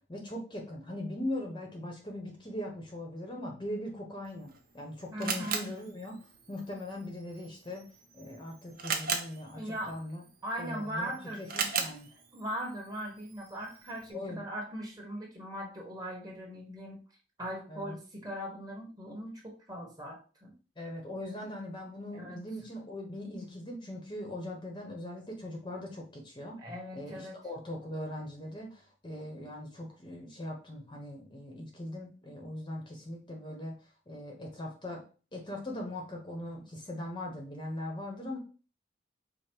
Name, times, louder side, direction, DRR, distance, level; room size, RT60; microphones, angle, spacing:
voice 1, 0.1-6.2 6.5-7.8 8.1-10.2 10.6-12.1 14.1-14.4 17.7-18.0 20.8-26.6 26.9-33.7 34.1-35.0 35.3-38.4, left 1 dB, 25° left, 0 dB, 0.8 m, -40 dB
Camera, 4.3-14.1, right 6 dB, 50° right, 0.7 m, -39 dB
voice 2, 5.1-5.6 9.6-10.0 10.4-11.4 11.7-11.9 12.3-17.0 17.4-20.5 22.1-22.4 26.6-27.4, equal, 20° right, -1 dB, 1.2 m, -39 dB
5.0 x 2.0 x 4.4 m, 0.36 s
head